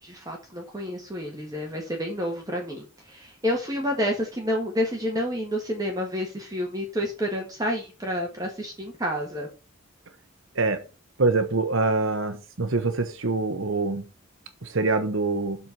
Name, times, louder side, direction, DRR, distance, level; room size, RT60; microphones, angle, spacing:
voice 1, 0.0-9.5, equal, 15° right, 1.7 m, -29 dB
voice 2, 11.2-14.1 14.6-15.6, right 3 dB, 65° right, 1.0 m, -25 dB
7.6 x 4.4 x 6.9 m
head